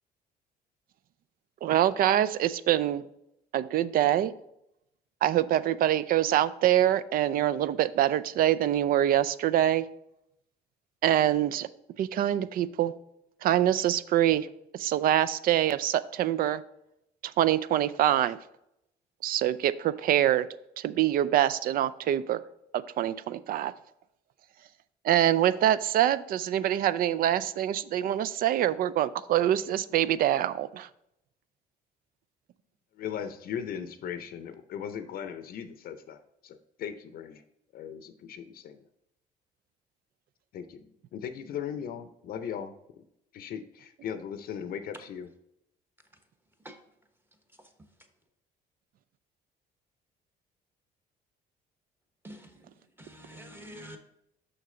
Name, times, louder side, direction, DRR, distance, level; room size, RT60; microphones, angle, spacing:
voice 1, 1.6-3.0 3.5-4.3 5.2-9.8 11.0-11.7 12.0-12.9 13.4-14.5 14.7-16.6 17.2-18.4 19.2-20.5 20.8-22.4 22.7-23.7 25.0-30.9, right 12 dB, 60° right, 0.4 m, -25 dB
voice 2, 32.9-37.4 37.7-38.8 40.5-40.8 41.1-43.0 43.3-45.3, left 8 dB, 60° left, 0.6 m, -38 dB
voice 3, 52.2-54.0, equal, 10° right, 1.1 m, -47 dB
6.4 x 5.8 x 3.8 m
cardioid pair, 110°, 17 cm